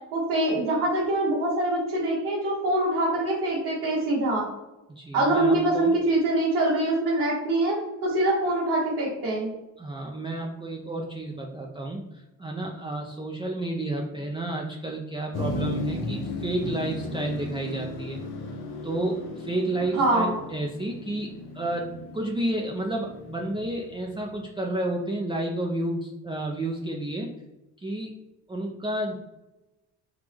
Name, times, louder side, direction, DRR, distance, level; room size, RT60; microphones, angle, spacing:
voice 1, 0.1-4.5 5.1-7.7 8.0-9.5 19.9-20.3, right 1 dB, 85° right, -7 dB, 1.2 m, -24 dB
voice 2, 4.9-5.9 9.8-18.2 18.8-21.3 21.5-27.3 27.8-28.2 28.5-29.1, right 1 dB, 10° right, 0 dB, 0.5 m, -31 dB
Motor vehicle (road), 15.3-24.3, left 2 dB, 60° left, 0.8 m, -36 dB
3.6 x 2.8 x 3.3 m, 1.0 s
hypercardioid pair, 45°, 43 cm